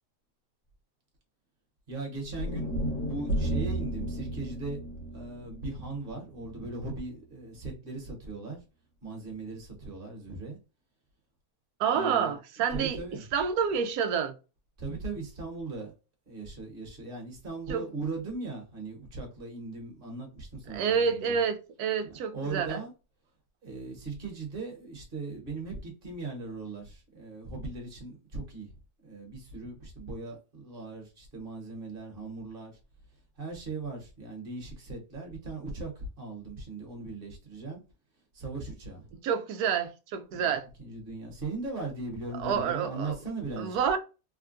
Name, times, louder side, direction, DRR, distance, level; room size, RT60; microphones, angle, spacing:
voice 1, 1.9-2.7 3.0-4.8 5.1-8.6 9.0-10.6 11.9-12.3 12.7-13.2 14.8-15.9 16.3-21.4 22.0-22.9 23.6-28.7 29.0-32.7 33.4-37.8 38.3-39.1 40.3-40.5 40.8-43.8, right 3 dB, 40° right, 1.2 m, -38 dB
sound 1, 2.4-6.6, right 1 dB, 65° left, 1.4 m, -33 dB
voice 2, 11.8-14.3 17.7-17.9 20.7-22.8 39.2-40.7 42.3-43.2 43.6-44.0, right 7 dB, 75° right, 1.1 m, -28 dB
3.6 x 2.3 x 2.4 m
omnidirectional pair, 1.7 m